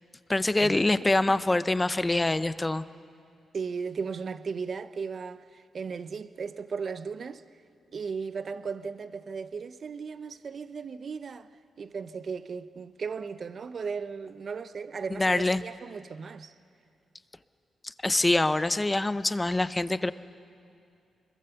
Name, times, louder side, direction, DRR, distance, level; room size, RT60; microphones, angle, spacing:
voice 1, 0.3-2.8 15.1-15.6 17.8-20.1, left 2 dB, 15° left, 0.5 m, -25 dB
voice 2, 3.5-7.4 7.9-11.5 11.8-16.5, right 5 dB, 45° right, 0.6 m, -36 dB
27.0 x 22.0 x 6.9 m
wide cardioid pair, 140°, 0 cm